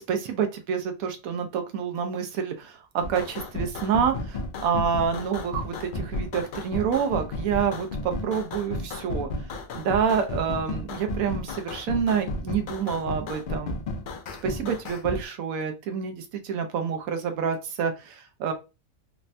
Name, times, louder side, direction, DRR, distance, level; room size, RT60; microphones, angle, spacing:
voice 1, 0.0-9.3 9.7-13.8 14.4-18.5, right 7 dB, 90° right, 6 dB, 1.0 m, -28 dB
sound 1, 3.0-15.2, left 2 dB, 70° left, 0.4 m, -33 dB
3.3 x 2.1 x 2.5 m, 0.28 s
omnidirectional pair, 1.4 m